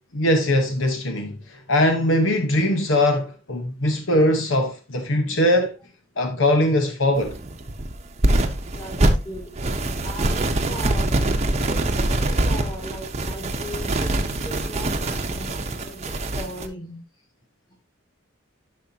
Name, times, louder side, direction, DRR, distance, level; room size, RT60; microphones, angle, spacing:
voice 1, 0.1-5.7 6.2-7.4, left 1 dB, 65° left, 1.2 m, -21 dB
sound 1, 7.2-16.7, right 1 dB, 35° right, 0.9 m, -24 dB
voice 2, 8.7-9.8 10.0-11.2 11.5-17.0, equal, 20° left, 2.4 m, -38 dB
11.0 x 5.7 x 2.8 m
head